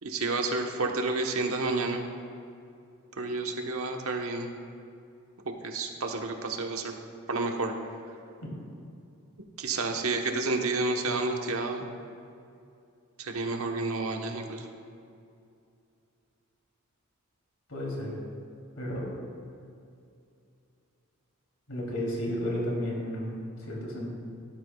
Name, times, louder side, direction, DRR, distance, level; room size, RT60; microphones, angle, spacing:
voice 1, 0.0-2.0 3.2-4.5 5.4-6.9 7.3-7.7 9.6-11.9 13.2-14.7, right 3 dB, 70° right, 3 dB, 1.1 m, -30 dB
voice 2, 17.7-18.2 18.8-19.1 21.7-24.1, equal, 70° left, -3 dB, 3.1 m, -33 dB
17.0 x 12.5 x 2.4 m, 2.5 s
head